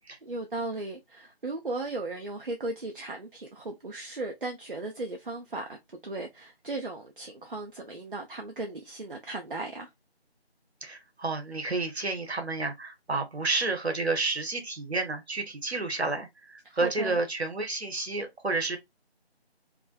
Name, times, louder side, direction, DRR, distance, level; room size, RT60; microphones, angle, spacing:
voice 1, 0.2-9.9 16.7-17.2, right 2 dB, 55° right, 0.5 m, -36 dB
voice 2, 10.8-18.8, right 3 dB, 75° right, 0.9 m, -30 dB
2.5 x 2.2 x 2.4 m
figure-of-eight pair, 170°, 32 cm